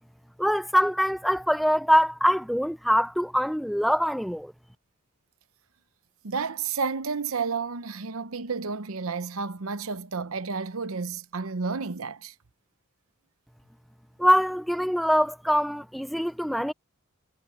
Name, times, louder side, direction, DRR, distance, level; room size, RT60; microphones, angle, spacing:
voice 1, 0.4-4.5 14.2-16.7, equal, ahead, 0.7 m, -23 dB
voice 2, 6.2-12.3, right 5 dB, 80° right, 0.9 m, -31 dB
head